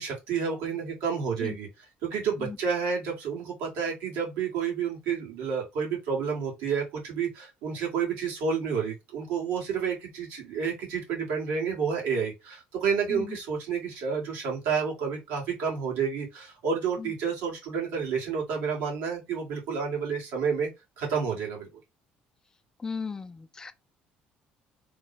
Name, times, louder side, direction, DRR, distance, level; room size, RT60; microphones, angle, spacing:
voice 1, 0.0-1.7 2.0-20.7 21.0-21.7, right 6 dB, 85° right, 1.7 m, -30 dB
voice 2, 22.8-23.7, left 5 dB, 20° left, 0.4 m, -36 dB
3.1 x 2.1 x 4.0 m
cardioid pair, 130°, 3 cm